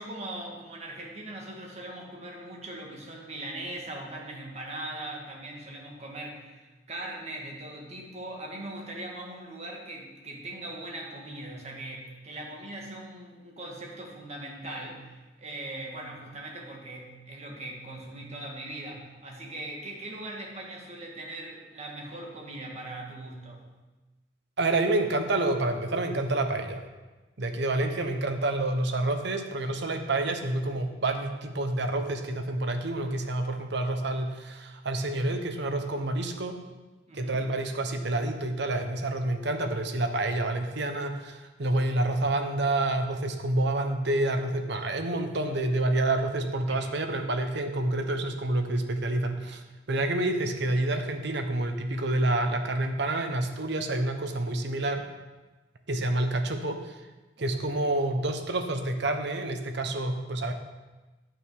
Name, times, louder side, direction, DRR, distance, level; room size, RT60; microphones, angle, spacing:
voice 1, 0.0-23.6 27.8-28.1 37.1-37.5 46.7-46.9 57.4-57.5, right 1 dB, 35° right, -1 dB, 2.0 m, -40 dB
voice 2, 24.6-26.8 27.4-36.6 37.1-55.0 55.9-57.0 57.4-60.5, right 2 dB, 65° right, 6 dB, 1.0 m, -28 dB
10.0 x 6.3 x 4.8 m, 1.2 s
head